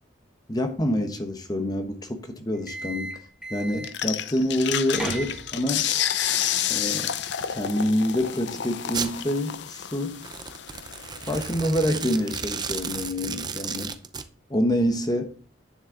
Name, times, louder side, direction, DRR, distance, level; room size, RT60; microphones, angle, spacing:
voice 1, 0.5-3.1 3.5-5.9 6.7-7.1 7.5-10.2 11.3-13.9 14.5-15.2, equal, 20° left, 1.1 m, -26 dB
sound 1, 2.5-4.0 4.7-5.8, right 1 dB, 5° right, 2.8 m, -36 dB
sound 2, 3.8-13.1, left 10 dB, 65° left, 0.6 m, -31 dB
Domestic sounds home sounds, 8.9-9.1 10.2-14.3, right 6 dB, 25° right, 0.6 m, -33 dB
9.6 x 7.1 x 3.8 m
head